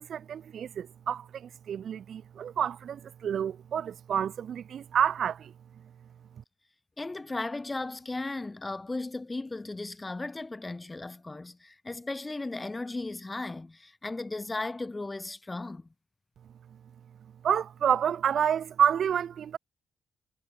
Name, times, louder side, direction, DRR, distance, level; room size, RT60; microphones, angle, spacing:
voice 1, 0.0-5.5 17.4-19.6, right 8 dB, 60° right, 2.8 m, -29 dB
voice 2, 7.0-15.9, left 2 dB, 20° left, 6.6 m, -36 dB
cardioid pair, 105°, 0 cm